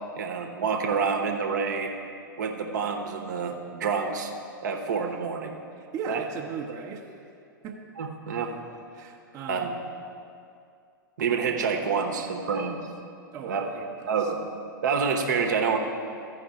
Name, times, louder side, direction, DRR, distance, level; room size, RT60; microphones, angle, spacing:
voice 1, 0.2-1.9 2.4-4.3 4.6-5.5 6.1-6.2 8.0-8.5 9.5-9.8 11.2-12.8 13.5-13.7 14.1-14.4 14.8-15.8, right 5 dB, 55° right, 3 dB, 1.0 m, -27 dB
voice 2, 5.7-7.1 7.6-7.8 8.9-9.8 13.3-14.3, right 5 dB, 30° right, -1 dB, 0.8 m, -37 dB
14.5 x 5.2 x 4.8 m, 2.4 s
figure-of-eight pair, 105°, 11 cm